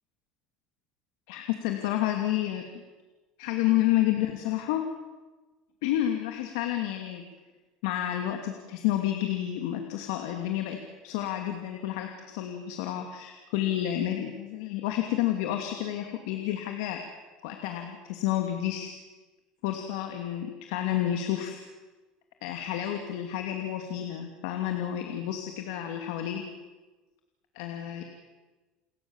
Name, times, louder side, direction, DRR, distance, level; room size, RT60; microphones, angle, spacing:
voice 1, 1.3-2.7 3.4-4.8 5.8-7.2 7.8-10.8 11.0-17.0 17.4-18.9 19.6-21.6 22.4-26.4 27.5-28.0, left 12 dB, 85° left, 4 dB, 2.7 m, -30 dB
29.5 x 21.5 x 7.3 m, 1.2 s
cardioid pair, 150°, 2 cm